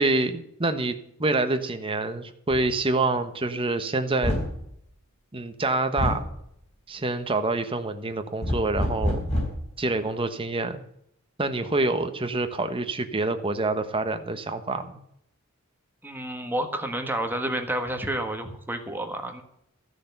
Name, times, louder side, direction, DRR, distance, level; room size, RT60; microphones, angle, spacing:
voice 1, 0.0-4.4 5.3-6.2 6.9-9.2 9.8-10.8 11.4-15.0, right 2 dB, 25° right, 8 dB, 1.2 m, -26 dB
sound 1, 2.5-2.7 4.2-4.6 6.0-6.3 8.4-9.7, left 1 dB, 30° left, 5.1 m, -27 dB
voice 2, 16.0-19.4, right 1 dB, 10° right, 5 dB, 1.5 m, -30 dB
14.5 x 6.5 x 8.0 m, 0.74 s
head